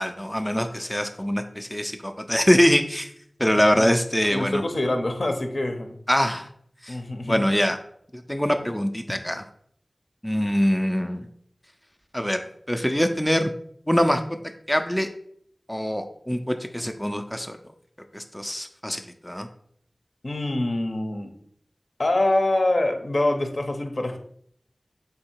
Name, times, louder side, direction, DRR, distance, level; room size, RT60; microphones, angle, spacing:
voice 1, 0.0-3.1 3.4-4.6 6.1-6.5 6.8-7.0 7.2-7.8 8.1-9.4 10.2-11.3 12.1-12.4 12.7-13.5 13.9-15.1 15.7-17.6 18.1-19.5, equal, 10° left, 5 dB, 0.3 m, -24 dB
voice 2, 4.3-6.0 6.9-7.4 20.2-21.3 22.0-24.2, left 1 dB, 70° left, 5 dB, 0.6 m, -25 dB
3.7 x 2.7 x 4.3 m, 0.65 s
wide cardioid pair, 50°, 0 cm